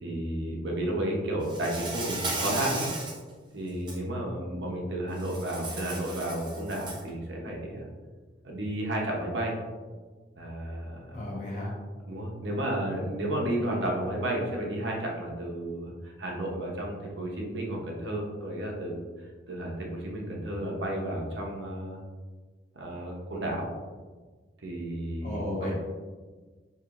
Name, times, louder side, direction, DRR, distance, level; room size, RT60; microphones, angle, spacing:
voice 1, 0.0-2.9 3.5-7.9 8.4-9.5 10.4-11.2 12.1-22.0 22.7-23.7 24.6-25.7, right 1 dB, 65° right, -1 dB, 0.8 m, -32 dB
Insect, 1.5-3.2 3.7-4.0 5.2-7.1, right 2 dB, 25° right, 0.5 m, -35 dB
voice 2, 11.1-11.7 12.9-13.0 25.2-25.7, left 1 dB, 40° left, -5 dB, 1.1 m, -34 dB
4.7 x 3.0 x 2.5 m, 1.4 s
head